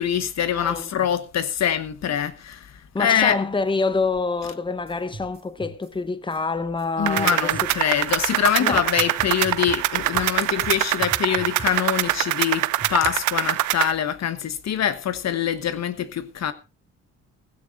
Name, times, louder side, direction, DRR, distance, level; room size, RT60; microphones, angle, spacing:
voice 1, 0.0-3.4 7.0-16.5, left 9 dB, 60° left, 1.3 m, -24 dB
voice 2, 2.9-7.5 8.6-8.9, left 3 dB, 15° left, 1.1 m, -26 dB
sound 1, 4.9-5.9 6.3-6.4 6.8-6.9 7.1-9.8 10.1-10.3 10.6-13.2, right 2 dB, 30° right, 3.7 m, -39 dB
sound 2, 7.1-13.9, right 16 dB, 80° right, 0.6 m, -24 dB
16.0 x 15.5 x 2.7 m
cardioid pair, 90°, 30 cm